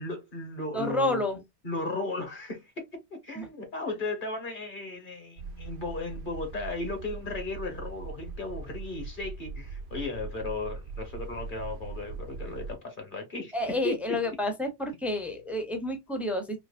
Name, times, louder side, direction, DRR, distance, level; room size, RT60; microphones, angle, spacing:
voice 1, 0.0-1.2 1.6-13.5 13.8-14.0, left 2 dB, 45° left, 1.3 m, -35 dB
voice 2, 0.7-1.4 3.3-3.5 13.5-16.6, left 1 dB, ahead, 0.7 m, -29 dB
sound 1, 5.4-12.8, right 4 dB, 70° right, 1.0 m, -40 dB
3.9 x 2.9 x 2.5 m
omnidirectional pair, 1.2 m